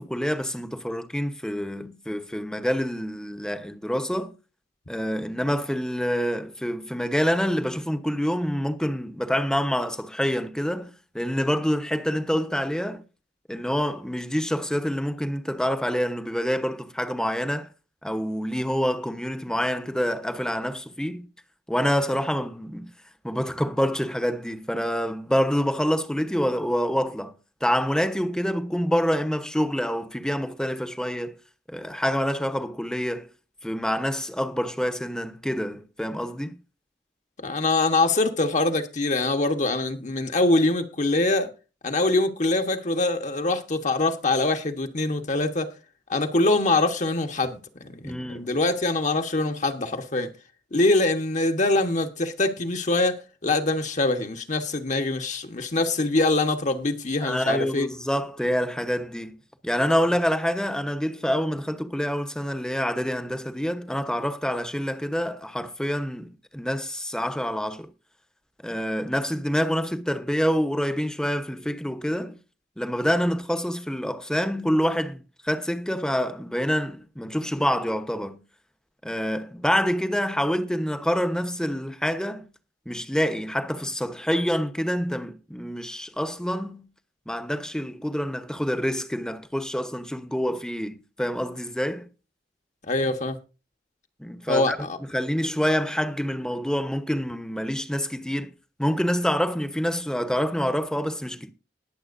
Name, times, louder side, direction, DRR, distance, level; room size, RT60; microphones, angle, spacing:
voice 1, 0.0-4.3 4.9-13.0 13.5-17.7 18.0-21.3 21.7-22.9 23.2-27.4 27.6-31.4 31.7-33.3 33.6-36.6 48.0-48.5 57.2-59.4 59.6-67.9 68.6-72.4 72.8-78.4 79.0-82.5 82.9-86.9 87.3-92.1 94.2-94.8 95.1-98.5 98.8-101.5, equal, 5° left, 0.9 m, -27 dB
voice 2, 37.4-41.5 41.8-45.7 46.1-50.3 50.7-57.9 92.9-93.4 94.5-94.7, left 2 dB, 45° left, 1.2 m, -24 dB
20.0 x 7.5 x 2.6 m
head